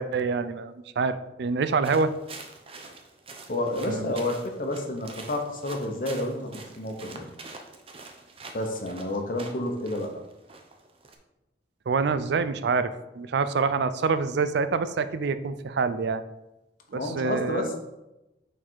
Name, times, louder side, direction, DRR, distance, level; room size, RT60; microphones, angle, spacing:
voice 1, 0.0-2.1 3.9-4.1 11.9-16.2 16.9-17.7, right 4 dB, 65° right, 12 dB, 0.4 m, -26 dB
sound 1, 1.8-11.2, right 3 dB, 35° right, 0.7 m, -45 dB
voice 2, 3.5-7.2 8.5-10.1 16.9-17.8, left 1 dB, 50° left, 4 dB, 1.0 m, -30 dB
6.3 x 4.1 x 4.6 m, 0.97 s
head